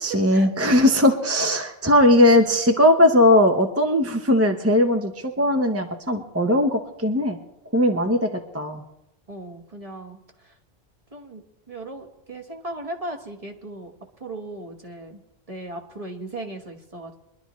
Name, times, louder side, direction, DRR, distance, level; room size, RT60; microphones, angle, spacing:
voice 1, 0.0-7.4 7.7-8.8, left 1 dB, 15° right, 4 dB, 0.7 m, -19 dB
voice 2, 9.3-10.6 11.1-13.9 14.2-15.2 15.5-17.1, right 2 dB, 35° right, 2 dB, 1.4 m, -37 dB
23.0 x 11.5 x 3.1 m, 0.86 s
omnidirectional pair, 1.1 m